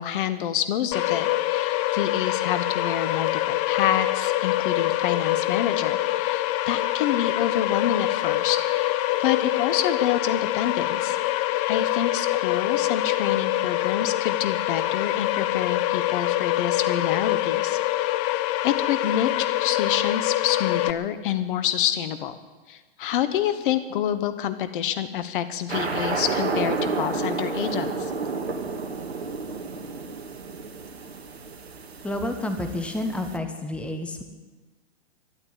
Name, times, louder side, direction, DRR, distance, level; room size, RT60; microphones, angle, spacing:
voice 1, 0.0-8.9 9.2-11.2 11.7-18.1 18.6-22.4 22.7-28.1, left 10 dB, 55° left, 12 dB, 1.2 m, -28 dB
sound 1, 0.9-20.9, left 16 dB, 30° left, 0.6 m, -25 dB
rocket launch, 25.7-33.4, right 4 dB, 80° right, 1.9 m, -30 dB
voice 2, 32.0-34.2, left 1 dB, 5° left, 6 dB, 1.3 m, -29 dB
13.0 x 11.5 x 9.7 m, 1.2 s
hypercardioid pair, 120°, 31 cm